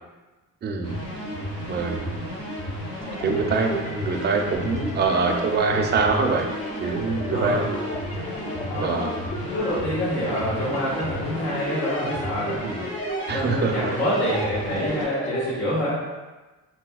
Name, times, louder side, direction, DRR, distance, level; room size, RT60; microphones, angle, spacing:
voice 1, 0.6-1.0 1.7-2.3 3.2-6.5 6.8-7.8 8.2-8.3 8.8-9.1 12.6-12.9 13.3-13.9, right 4 dB, 35° right, 3 dB, 0.4 m, -24 dB
sound 1, 0.8-15.1, equal, 60° left, 1.5 m, -33 dB
sound 2, 3.0-15.5, equal, 25° left, 0.3 m, -36 dB
voice 2, 7.3-7.6 8.5-9.1 9.4-12.6 13.3-16.0, equal, 90° left, -15 dB, 1.3 m, -26 dB
4.2 x 2.2 x 2.2 m, 1.2 s
cardioid pair, 90°, 30 cm